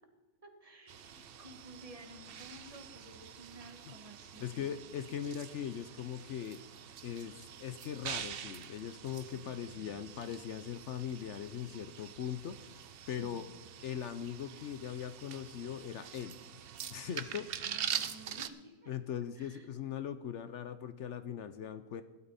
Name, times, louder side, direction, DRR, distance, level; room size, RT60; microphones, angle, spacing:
voice 1, 0.4-4.8 9.2-10.1 13.0-13.5 17.2-18.9 19.4-19.8, right 1 dB, 25° right, 4 dB, 1.5 m, -54 dB
sound 1, 0.9-18.5, right 9 dB, 70° right, 0.5 m, -45 dB
voice 2, 4.4-6.6 7.0-12.8 13.1-13.5 13.8-16.4 16.9-17.5 18.9-22.0, left 9 dB, 65° left, 11 dB, 0.7 m, -40 dB
16.0 x 12.0 x 4.1 m, 1.3 s
omnidirectional pair, 1.7 m